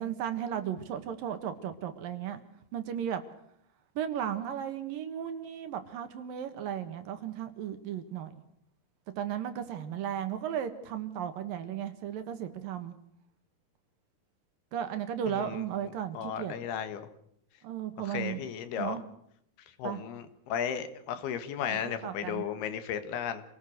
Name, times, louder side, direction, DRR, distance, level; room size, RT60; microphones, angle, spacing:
voice 1, 0.0-2.4 2.7-3.2 4.0-8.3 9.2-12.9 14.7-16.5 17.6-18.4 18.8-19.0 19.8-20.0 21.7-22.5, right 9 dB, 70° right, 3.1 m, -35 dB
voice 2, 15.3-15.7 16.2-17.1 18.0-19.0 19.8-23.4, left 8 dB, 85° left, 3.6 m, -35 dB
27.5 x 18.5 x 6.6 m
omnidirectional pair, 4.5 m